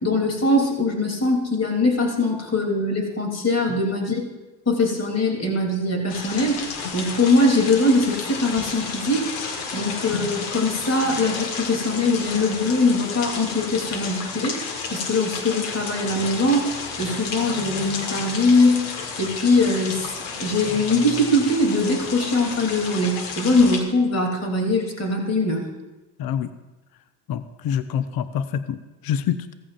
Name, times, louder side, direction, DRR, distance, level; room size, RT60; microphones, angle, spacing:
voice 1, 0.0-4.2 4.6-6.6 6.9-9.3 9.7-14.6 14.9-20.1 20.4-25.6, left 2 dB, 30° left, 1 dB, 3.2 m, -22 dB
sound 1, 6.1-23.8, left 5 dB, 75° left, 1.8 m, -32 dB
voice 2, 26.2-26.5 27.3-29.5, left 9 dB, 45° left, 12 dB, 0.8 m, -26 dB
15.5 x 14.5 x 2.6 m, 1.1 s
hypercardioid pair, 70°, 49 cm